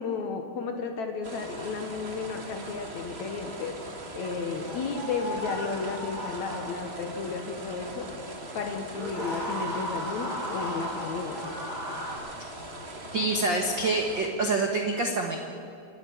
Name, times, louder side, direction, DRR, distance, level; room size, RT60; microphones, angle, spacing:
voice 1, 0.0-3.7 4.2-8.1 8.5-11.4, left 4 dB, 60° left, 5 dB, 2.2 m, -33 dB
sound 1, 1.2-14.3, right 1 dB, 35° right, 0.9 m, -41 dB
sound 2, 4.6-7.0 8.9-12.1, equal, 10° left, 5.7 m, -36 dB
voice 2, 13.1-15.4, right 2 dB, 75° right, 2 dB, 1.0 m, -26 dB
29.0 x 10.5 x 9.4 m, 2.7 s
omnidirectional pair, 4.5 m